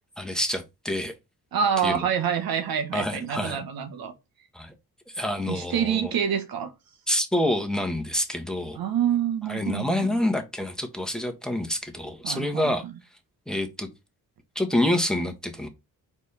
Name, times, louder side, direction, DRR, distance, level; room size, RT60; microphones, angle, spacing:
voice 1, 0.2-1.1 1.8-2.0 2.9-3.6 4.5-4.7 5.1-6.1 7.1-8.8 9.5-12.8 13.5-13.9 14.5-15.7, left 1 dB, ahead, 1.4 m, -27 dB
voice 2, 1.5-4.1 5.5-6.7 8.8-10.2 12.2-12.9, right 8 dB, 75° right, 1.2 m, -27 dB
4.5 x 4.4 x 5.6 m
cardioid pair, 90°, 36 cm